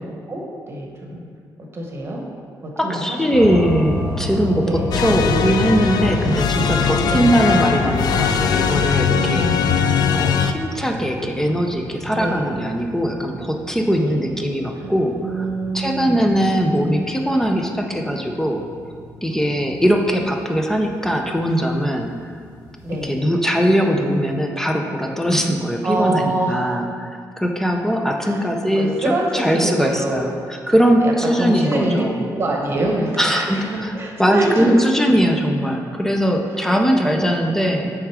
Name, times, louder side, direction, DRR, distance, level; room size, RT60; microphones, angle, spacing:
voice 1, 0.0-1.3 1.7-2.2 2.6-3.7 4.6-4.9 7.0-7.4 9.1-9.7 12.1-12.5 14.0-14.2 14.8-14.9 15.2-16.4 22.8-23.1 25.8-26.8 28.2-28.5 28.8-30.3 31.0-34.7 36.8-37.6, right 2 dB, 35° right, 0 dB, 1.1 m, -25 dB
voice 2, 2.8-9.5 10.1-15.5 15.7-18.6 19.2-22.1 23.0-30.3 30.7-32.2 33.2-33.9 34.2-37.9, equal, 5° left, 3 dB, 0.5 m, -20 dB
sound 1, 3.3-23.1, left 1 dB, 90° left, 1.0 m, -32 dB
sound 2, 4.9-10.5, left 7 dB, 75° left, 0.4 m, -20 dB
6.4 x 3.7 x 4.7 m, 2.1 s
cardioid pair, 115°, 7 cm